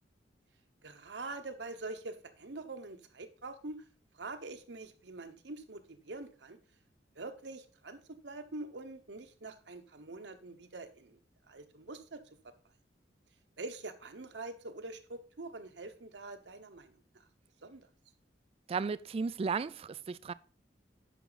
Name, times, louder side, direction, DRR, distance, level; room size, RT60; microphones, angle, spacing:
voice 1, 0.8-3.8 4.1-6.6 7.2-11.2 11.5-12.2 13.6-17.2 17.6-17.9, right 2 dB, 75° right, 1.0 m, -45 dB
voice 2, 18.7-20.3, right 5 dB, 35° right, 0.3 m, -34 dB
9.2 x 5.9 x 3.9 m
head